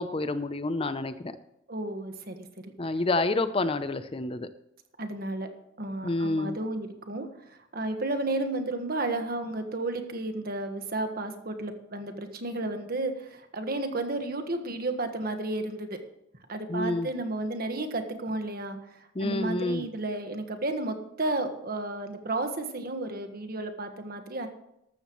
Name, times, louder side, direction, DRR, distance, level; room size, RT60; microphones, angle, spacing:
voice 1, 0.0-1.4 2.8-4.5 6.0-6.6 16.7-17.1 19.2-19.8, left 2 dB, 30° left, 11 dB, 0.6 m, -28 dB
voice 2, 1.7-2.4 2.6-2.7 5.0-5.5 5.8-16.0 16.5-24.5, right 2 dB, 50° right, 6 dB, 1.5 m, -32 dB
14.5 x 12.5 x 3.1 m, 0.83 s
head